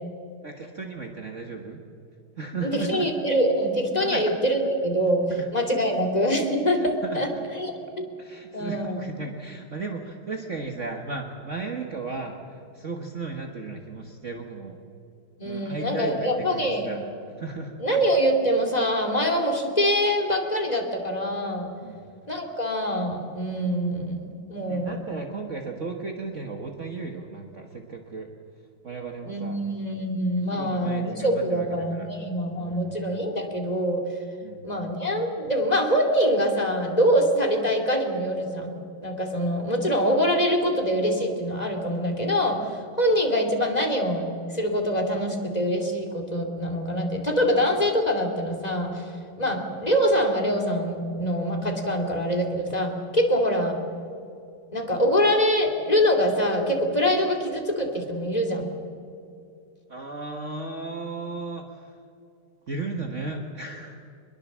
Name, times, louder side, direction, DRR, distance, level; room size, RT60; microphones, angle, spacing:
voice 1, 0.4-1.8 2.4-3.1 4.0-4.2 5.3-5.5 6.8-7.4 8.2-14.8 15.4-17.0 17.4-17.7 21.8-22.1 24.7-28.3 28.8-29.6 30.5-32.1 32.6-32.9 34.4-34.6 59.9-62.0 62.7-64.0, right 3 dB, 40° right, 3 dB, 1.6 m, -35 dB
voice 2, 2.6-7.3 7.5-8.1 8.5-9.0 15.4-16.9 17.8-21.7 22.3-24.9 29.2-34.1 34.6-38.7 39.0-53.8 54.7-58.7, equal, 20° left, 2 dB, 2.7 m, -24 dB
24.0 x 21.5 x 7.4 m, 2.5 s
omnidirectional pair, 2.2 m